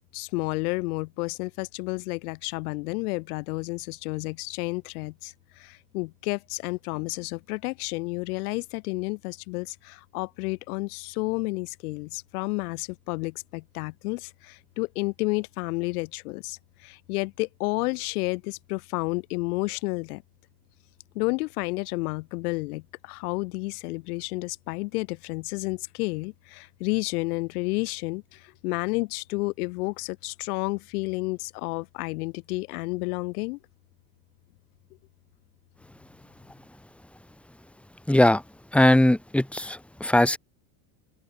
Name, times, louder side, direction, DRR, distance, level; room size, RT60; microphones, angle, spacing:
voice 1, 0.0-20.2 21.1-33.6, left 24 dB, 80° left, 6.4 m, -31 dB
voice 2, 38.1-38.4 38.7-40.4, left 1 dB, 5° left, 3.1 m, -20 dB
open air
cardioid pair, 150°, 44 cm